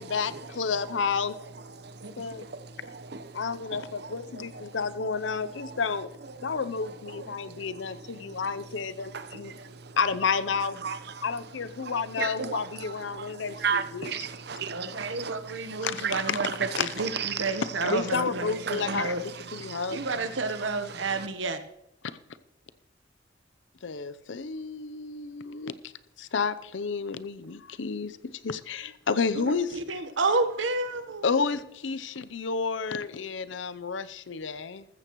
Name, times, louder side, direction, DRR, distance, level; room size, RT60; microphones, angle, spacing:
voice 1, 0.0-1.4 2.2-2.4 3.3-6.1 6.4-9.6 10.0-10.8 11.2-14.1 15.8-16.4 16.8-16.9 17.8-19.2 19.5-20.1 23.8-25.7 26.2-29.8 31.2-34.8, left 5 dB, 85° left, 0.6 m, -31 dB
voice 2, 1.8-4.8 5.4-5.8 6.4-6.5 7.2-8.6 9.1-10.0 10.8-11.2 11.8-16.7 17.0-18.0 18.7-20.2 20.9-21.3, right 6 dB, 60° right, 0.9 m, -36 dB
voice 3, 14.7-16.5 16.8-19.2 19.9-21.6 29.3-31.3, right 3 dB, 85° right, 1.1 m, -30 dB
14.5 x 14.0 x 3.1 m
head